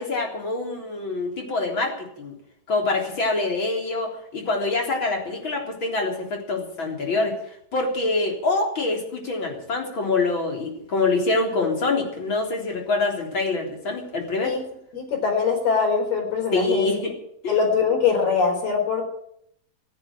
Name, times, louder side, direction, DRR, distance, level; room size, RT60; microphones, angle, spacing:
voice 1, 0.0-2.3 2.7-14.6 16.5-17.1 17.4-17.5, left 3 dB, 30° left, 1 dB, 4.1 m, -25 dB
voice 2, 14.9-16.9 17.5-19.1, left 5 dB, 85° left, 1 dB, 6.4 m, -22 dB
14.5 x 10.5 x 8.9 m, 0.72 s
omnidirectional pair, 4.3 m